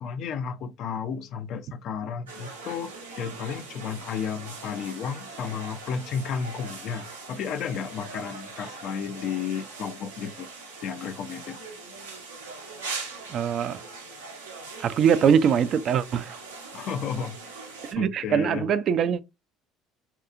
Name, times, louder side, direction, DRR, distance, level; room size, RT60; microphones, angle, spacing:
voice 1, 0.0-10.5 10.8-11.6 14.6-14.7 16.7-17.4 18.0-18.7, left 7 dB, 55° left, 0.4 m, -33 dB
sound 1, 2.3-17.9, right 3 dB, 90° right, 0.7 m, -41 dB
voice 2, 13.3-13.8 14.8-16.4 17.9-19.2, right 7 dB, 50° right, 0.3 m, -22 dB
2.7 x 2.3 x 2.4 m
hypercardioid pair, 65°, 0 cm